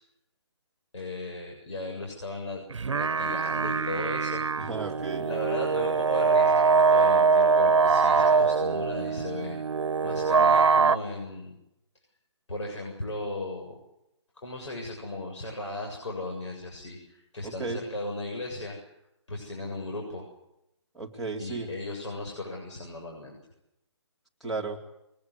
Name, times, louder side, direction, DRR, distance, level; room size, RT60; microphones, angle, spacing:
voice 1, 0.9-2.6 2.9-4.7 5.2-11.6 12.5-13.8 14.4-18.8 19.3-20.3 21.4-23.4, left 2 dB, 85° left, 1 dB, 7.6 m, -36 dB
sound 1, 2.7-11.0, right 5 dB, 85° right, 1.0 m, -23 dB
voice 2, 4.6-5.3 17.4-17.8 20.9-21.7 24.4-24.8, right 3 dB, ahead, -5 dB, 2.5 m, -34 dB
23.0 x 20.0 x 9.8 m, 0.87 s
hypercardioid pair, 170°, 15 cm